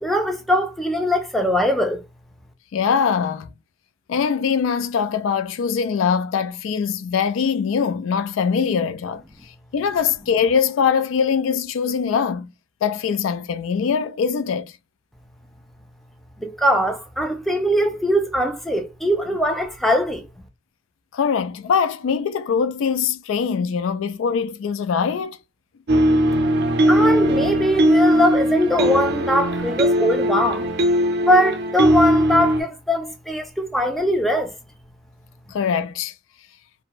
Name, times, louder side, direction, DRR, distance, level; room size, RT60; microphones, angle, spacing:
voice 1, 0.0-2.0 16.4-20.2 26.9-30.7 31.3-34.5, equal, ahead, 0.4 m, -21 dB
voice 2, 2.7-3.5 4.1-9.2 9.7-12.5 12.8-14.7 21.1-25.4 35.5-36.1, left 6 dB, 90° left, 0.3 m, -22 dB
sound 1, 25.9-32.6, equal, 55° right, 0.5 m, -19 dB
2.5 x 2.1 x 2.8 m
head